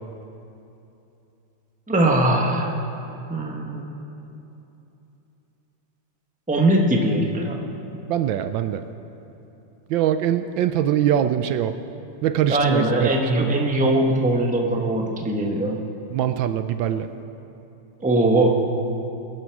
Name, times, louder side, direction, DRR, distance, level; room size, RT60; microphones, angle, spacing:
voice 1, 1.9-2.7 3.3-3.8 6.5-7.6 12.5-15.8 18.0-18.5, right 1 dB, 5° right, 1 dB, 0.6 m, -21 dB
voice 2, 8.1-8.8 9.9-11.8 12.2-13.1 13.4-13.5 16.1-17.1, right 10 dB, 75° right, 10 dB, 1.1 m, -22 dB
22.0 x 10.5 x 4.7 m, 2.9 s
omnidirectional pair, 2.4 m